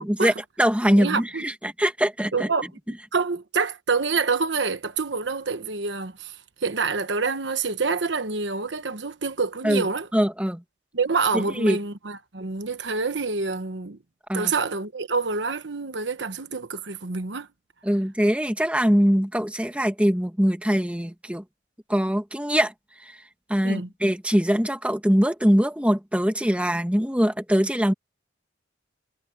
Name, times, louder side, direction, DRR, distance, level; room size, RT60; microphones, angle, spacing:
voice 1, 0.0-2.5 9.6-9.9 10.1-10.6 11.3-11.8 14.3-14.5 17.8-21.4 21.9-23.2 23.5-27.9, equal, 5° right, 1.7 m, -22 dB
voice 2, 0.9-1.4 2.3-2.7 3.1-10.1 10.9-14.0 14.3-17.5 23.6-23.9, right 4 dB, 70° right, 1.1 m, -27 dB
head